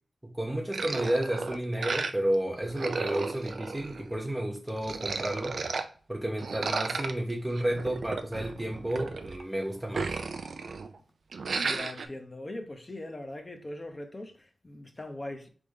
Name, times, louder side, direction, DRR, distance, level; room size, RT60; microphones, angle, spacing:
voice 1, 0.2-5.6 6.1-10.1, right 1 dB, 15° right, 0.6 m, -31 dB
sound 1, 0.7-2.3 2.6-4.3 4.7-5.8 6.4-9.4 9.7-11.0 11.3-12.1, right 4 dB, 75° right, 0.5 m, -34 dB
voice 2, 11.6-15.5, left 1 dB, 30° left, 0.7 m, -40 dB
4.1 x 3.5 x 3.5 m
wide cardioid pair, 90°, 0 cm